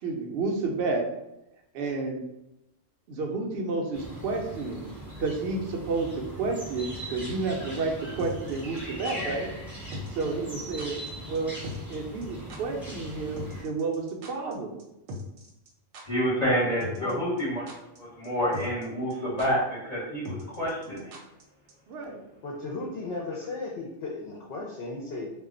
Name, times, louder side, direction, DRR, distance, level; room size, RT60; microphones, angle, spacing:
voice 1, 0.0-1.1 1.7-2.2 3.1-4.9 5.2-9.5 10.1-11.0 11.3-11.5 11.9-14.7 21.9-22.2, right 3 dB, 60° right, 1 dB, 0.7 m, -30 dB
sound 1, 3.9-13.6, equal, ahead, 0.6 m, -40 dB
sound 2, 8.2-9.2 9.9-10.2 10.5-10.6 10.8-11.1 11.3-11.4 11.6-12.0 12.2-12.3 12.5-12.6 13.4-14.5 14.8-14.9 15.1-15.7 15.9-16.0 16.8-17.1 17.4-18.0 18.2-18.3 18.5-18.8 19.1-19.2 19.4-19.5 20.2-21.4 21.7-21.8, left 1 dB, 80° right, 1.0 m, -39 dB
voice 2, 16.0-21.1, equal, 35° left, -9 dB, 0.9 m, -28 dB
voice 3, 22.4-25.3, left 3 dB, 65° left, -2 dB, 0.7 m, -36 dB
2.3 x 2.1 x 3.7 m, 0.89 s
omnidirectional pair, 1.3 m